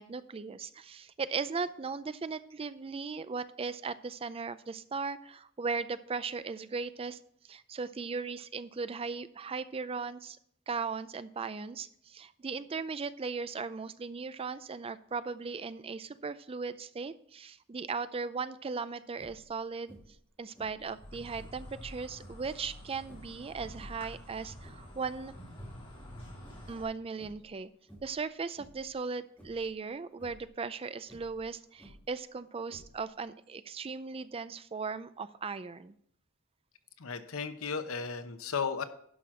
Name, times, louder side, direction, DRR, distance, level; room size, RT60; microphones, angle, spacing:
voice 1, 0.0-7.2 7.5-10.4 10.7-19.9 20.4-25.3 26.7-27.7 28.0-35.9, right 4 dB, 30° right, 14 dB, 0.4 m, -37 dB
sound 1, 19.1-19.5 19.9-20.3 20.5-21.7 22.1-22.5 23.0-24.2 24.5-25.0 25.4-26.2 26.4-26.8 27.1-27.5 27.9-28.2 28.5-28.9 29.4-29.7 30.1-30.5 31.0-32.2 32.7-33.2, equal, 10° left, 3.0 m, -55 dB
Insect, 20.8-26.8, equal, 25° left, 3.2 m, -48 dB
voice 2, 37.0-38.8, left 5 dB, 90° left, 10 dB, 0.9 m, -35 dB
11.0 x 5.9 x 4.9 m, 0.67 s
head